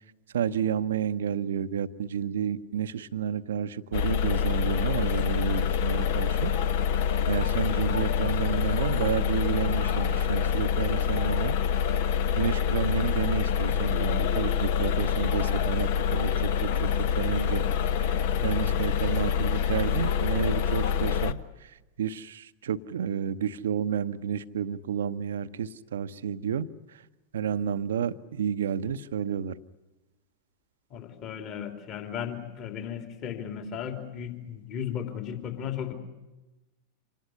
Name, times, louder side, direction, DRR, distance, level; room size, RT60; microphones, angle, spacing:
voice 1, 0.3-6.5 7.3-11.5 12.3-16.9 17.2-21.7 22.0-26.7 27.3-29.5, right 8 dB, 65° right, 13 dB, 0.9 m, -31 dB
sound 1, 3.9-21.3, left 8 dB, 50° left, 1.1 m, -26 dB
voice 2, 30.9-35.9, left 8 dB, 35° left, 5 dB, 3.2 m, -35 dB
26.5 x 19.5 x 9.9 m, 1.1 s
figure-of-eight pair, 90°, 0 cm